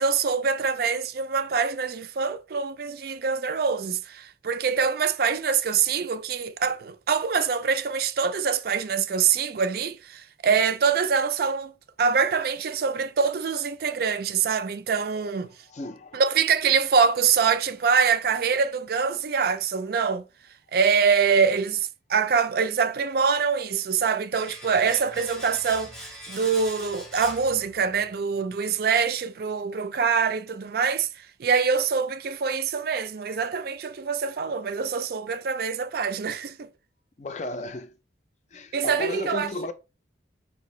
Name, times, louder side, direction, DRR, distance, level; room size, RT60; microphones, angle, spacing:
voice 1, 0.0-11.7 12.0-15.5 16.1-20.2 20.7-36.7 38.7-39.5, right 6 dB, 55° right, 0.4 m, -24 dB
voice 2, 15.7-16.2 37.2-37.9 38.5-39.7, left 2 dB, 40° left, 0.4 m, -34 dB
Domestic sounds home sounds, 24.3-28.1 28.4-28.5, equal, ahead, 0.7 m, -42 dB
4.8 x 2.6 x 3.0 m
head